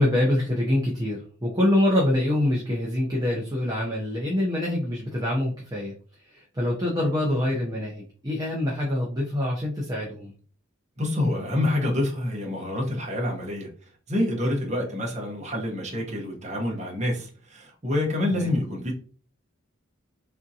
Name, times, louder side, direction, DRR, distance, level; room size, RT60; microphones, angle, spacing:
voice 1, 0.0-5.9 6.2-10.3 18.3-18.5, left 1 dB, 20° right, 0.6 m, -25 dB
voice 2, 11.0-13.7 14.1-18.9, left 1 dB, 35° right, 0.9 m, -27 dB
3.5 x 2.6 x 2.7 m
head